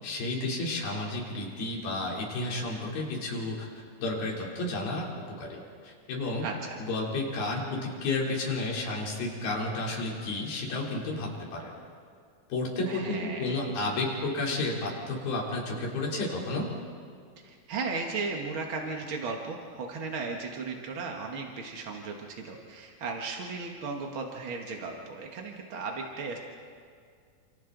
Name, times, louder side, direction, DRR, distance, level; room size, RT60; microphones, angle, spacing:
voice 1, 0.0-3.7 4.0-5.1 5.4-6.5 6.9-11.7 12.5-16.7, left 2 dB, 75° left, -3 dB, 5.4 m, -31 dB
voice 2, 6.4-6.8 12.8-13.5 17.4-26.4, right 4 dB, 55° right, 1 dB, 1.4 m, -36 dB
29.5 x 28.0 x 3.9 m, 2.2 s
omnidirectional pair, 4.4 m